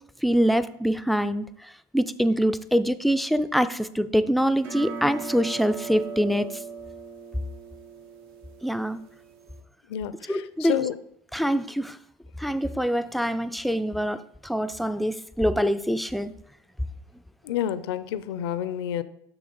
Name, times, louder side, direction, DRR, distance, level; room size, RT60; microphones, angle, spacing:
voice 1, 0.2-6.5 8.6-9.0 10.3-10.8 11.3-12.0 12.4-16.3, equal, ahead, 13 dB, 0.4 m, -24 dB
sound 1, 4.6-9.6, right 5 dB, 75° right, 1.1 m, -39 dB
voice 2, 9.9-10.9 17.4-19.0, left 10 dB, 80° left, 14 dB, 0.5 m, -29 dB
6.9 x 6.0 x 3.9 m, 0.75 s
hypercardioid pair, 85°, 13 cm